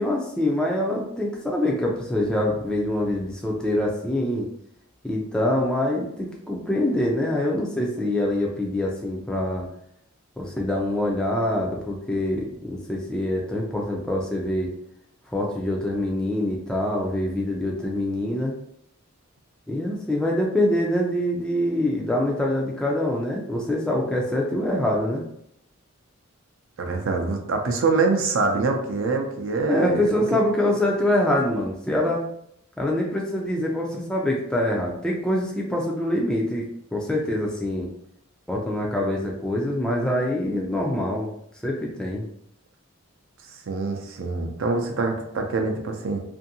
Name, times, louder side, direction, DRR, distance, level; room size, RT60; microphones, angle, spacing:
voice 1, 0.0-4.5 5.0-9.7 10.4-14.7 15.3-18.5 19.7-25.2 29.7-32.2 32.8-36.6 36.9-37.9 38.5-41.3 41.6-42.2, left 1 dB, 5° left, -2 dB, 0.3 m, -25 dB
voice 2, 26.8-30.2 43.7-46.2, right 3 dB, 65° right, 3 dB, 0.5 m, -25 dB
2.6 x 2.6 x 2.7 m, 0.74 s
head